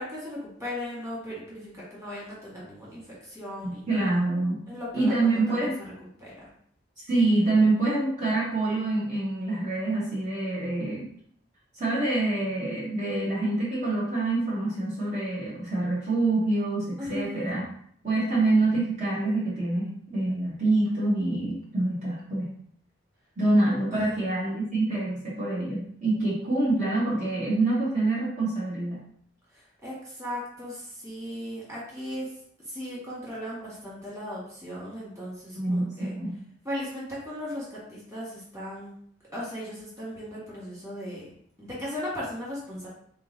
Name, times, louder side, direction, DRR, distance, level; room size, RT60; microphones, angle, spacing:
voice 1, 0.0-4.1 4.7-5.7 6.2-6.3 17.0-17.5 23.9-24.2 29.5-32.3 32.7-36.1 36.6-38.9 39.3-41.3 41.6-42.9, left 1 dB, 15° right, -7 dB, 1.8 m, -37 dB
voice 2, 3.9-4.6 4.9-5.8 7.1-11.1 11.7-17.6 18.0-22.5 23.4-29.0 35.6-36.3, right 2 dB, 40° right, -9 dB, 1.1 m, -26 dB
3.9 x 3.7 x 2.7 m, 0.63 s
head